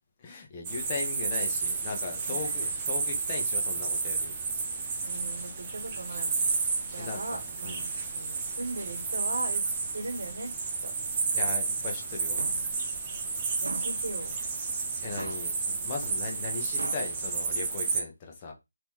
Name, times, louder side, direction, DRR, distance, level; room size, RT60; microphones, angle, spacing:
voice 1, 0.2-4.3 5.3-5.5 6.1-6.2 7.0-7.9 11.3-12.4 15.0-18.5, left 4 dB, 20° left, 0.9 m, -38 dB
sound 1, 0.6-18.0, right 4 dB, 15° right, 0.6 m, -31 dB
voice 2, 2.3-2.7 5.0-6.4 6.8-7.8 8.1-10.5 10.8-10.9 13.6-14.4, right 2 dB, 60° right, 1.8 m, -38 dB
sound 2, 12.4-12.8 13.6-14.1 15.2-15.6 16.8-17.2, right 2 dB, 85° right, 0.5 m, -40 dB
3.7 x 2.9 x 4.6 m
figure-of-eight pair, 170°, 0 cm